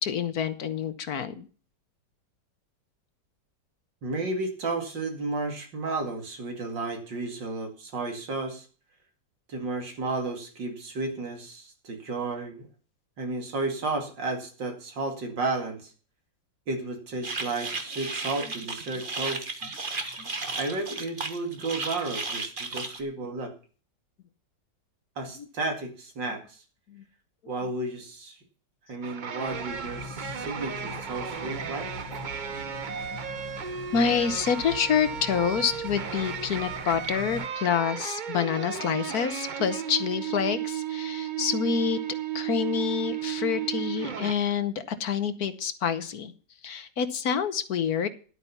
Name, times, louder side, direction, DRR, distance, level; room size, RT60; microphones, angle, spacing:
voice 1, 0.0-1.5 20.2-20.3 26.9-27.0 32.9-33.0 33.9-42.0 42.3-46.3 46.6-48.1, left 7 dB, 60° left, 12 dB, 1.4 m, -27 dB
voice 2, 4.0-8.7 9.5-12.7 13.2-15.9 16.7-19.5 20.5-23.5 25.2-26.6 27.5-28.4 28.9-31.9, right 3 dB, 85° right, 4 dB, 3.1 m, -33 dB
sound 1, 17.2-23.0, right 3 dB, 30° right, 1.5 m, -34 dB
sound 2, 29.0-44.3, right 8 dB, 55° right, 0.5 m, -34 dB
sound 3, 29.4-37.5, left 3 dB, 85° left, 2.4 m, -42 dB
11.5 x 8.9 x 5.6 m, 0.39 s
omnidirectional pair, 1.9 m